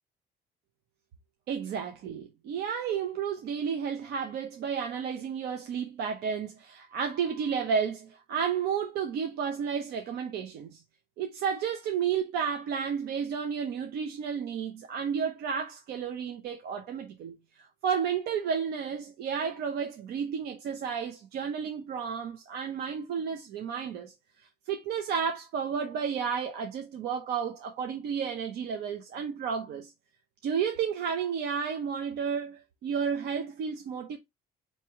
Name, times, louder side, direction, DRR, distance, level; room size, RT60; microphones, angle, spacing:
voice 1, 1.5-10.8 11.2-24.1 24.7-29.9 30.4-34.2, right 7 dB, 70° right, 0.7 m, -32 dB
4.5 x 3.0 x 2.9 m
cardioid pair, 110°, 17 cm